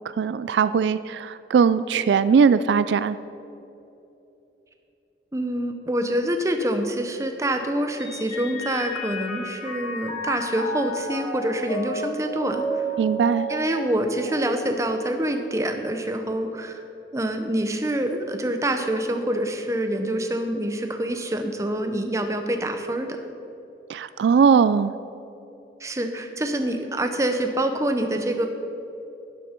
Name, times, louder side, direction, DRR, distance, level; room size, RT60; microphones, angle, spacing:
voice 1, 0.1-3.2 13.0-13.5 23.9-24.9, right 6 dB, 80° right, 14 dB, 0.3 m, -20 dB
voice 2, 5.3-12.8 13.5-16.8 17.1-23.2 25.8-28.5, right 1 dB, 15° right, 6 dB, 0.8 m, -26 dB
Mallet percussion, 8.0-15.7, right 1 dB, 30° left, 2.0 m, -32 dB
11.5 x 11.0 x 4.4 m, 2.9 s
head